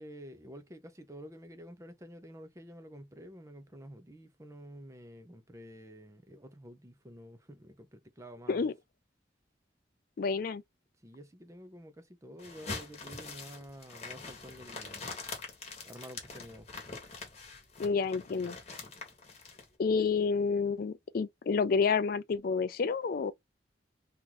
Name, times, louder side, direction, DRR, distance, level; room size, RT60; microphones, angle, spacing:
voice 1, 0.0-8.7 11.0-15.1 15.9-16.7, equal, 15° right, 0.6 m, -49 dB
voice 2, 10.2-10.6 17.8-18.6 19.8-23.3, left 5 dB, 55° left, 0.4 m, -29 dB
sound 1, 12.4-19.7, left 4 dB, 35° left, 1.2 m, -44 dB
3.0 x 2.5 x 3.8 m
head